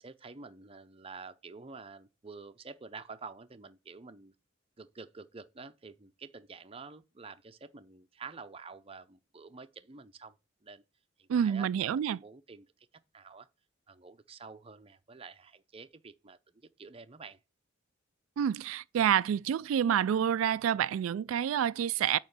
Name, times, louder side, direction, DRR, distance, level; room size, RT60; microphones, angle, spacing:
voice 1, 0.0-4.3 4.8-10.3 10.6-10.8 11.2-12.7 13.1-13.5 13.9-17.4, right 4 dB, 30° right, 0.6 m, -49 dB
voice 2, 11.3-12.2 18.4-22.2, right 9 dB, 90° right, 0.3 m, -28 dB
8.8 x 3.1 x 6.5 m
head